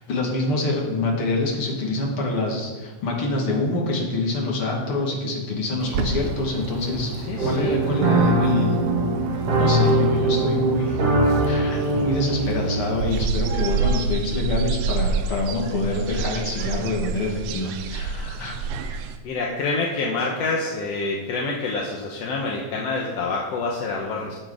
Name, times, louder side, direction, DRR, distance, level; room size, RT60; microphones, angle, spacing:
voice 1, 0.1-7.1 7.4-8.8 9.6-11.0 11.5-18.6, left 2 dB, 45° left, -1 dB, 2.7 m, -26 dB
Bird, 5.8-13.3, right 4 dB, 70° right, 2.2 m, -32 dB
voice 2, 7.3-7.8 19.2-24.4, left 3 dB, 65° left, -1 dB, 1.8 m, -27 dB
sound 1, 7.4-13.0, right 1 dB, 50° right, 2.4 m, -21 dB
sound 2, 13.1-19.2, right 5 dB, 85° right, 2.4 m, -27 dB
15.5 x 6.7 x 4.9 m, 1.3 s
omnidirectional pair, 3.8 m